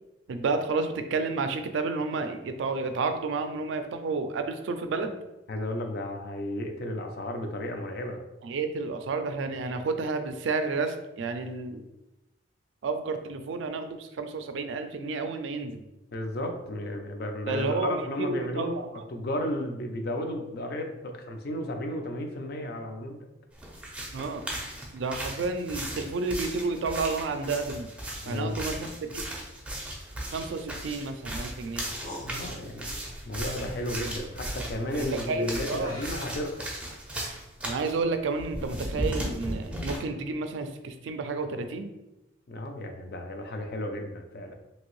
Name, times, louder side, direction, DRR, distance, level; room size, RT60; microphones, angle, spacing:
voice 1, 0.3-5.1 8.4-11.8 12.8-15.8 17.5-17.9 18.2-19.0 24.1-24.4 24.9-27.9 28.3-29.3 30.3-31.9 34.9-35.9 37.6-41.9, right 3 dB, 75° right, 8 dB, 0.3 m, -31 dB
voice 2, 5.5-8.2 16.1-18.7 19.1-23.2 28.2-28.7 32.2-32.9 33.3-36.7 42.5-44.5, left 1 dB, 55° left, 4 dB, 0.4 m, -33 dB
sound 1, 23.6-37.9 38.4-40.0, right 1 dB, 5° right, 0.4 m, -36 dB
sound 2, 29.9-35.3 35.8-38.7 39.0-39.4, left 1 dB, 80° left, 1.3 m, -47 dB
2.8 x 2.6 x 3.0 m, 0.95 s
head